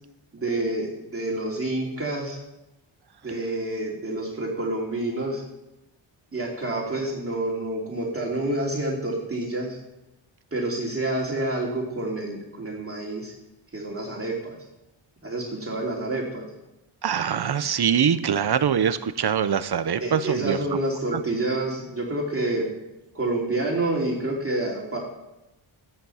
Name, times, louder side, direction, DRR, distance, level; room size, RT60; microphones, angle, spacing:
voice 1, 0.3-2.4 3.2-5.4 6.3-9.8 10.5-13.3 13.7-14.6 15.2-16.4 20.0-22.7 23.1-25.0, right 2 dB, 25° right, -3 dB, 2.8 m, -28 dB
voice 2, 17.0-20.6 21.1-21.2, right 8 dB, 55° right, 12 dB, 0.8 m, -23 dB
13.5 x 10.5 x 5.7 m, 0.93 s
wide cardioid pair, 110°, 49 cm